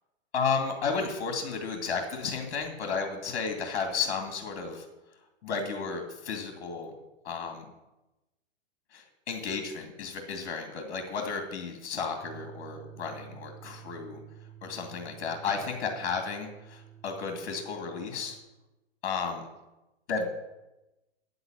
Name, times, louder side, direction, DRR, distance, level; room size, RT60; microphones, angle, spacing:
voice 1, 0.3-4.8 5.4-6.9 7.2-7.6 8.9-14.2 14.6-18.4 19.0-19.5 20.1-20.3, left 5 dB, 60° left, 4 dB, 2.3 m, -33 dB
sound 1, 12.2-18.4, right 10 dB, 15° left, 4.9 m, -50 dB
9.0 x 7.9 x 9.0 m, 1.0 s
hypercardioid pair, 140°, 33 cm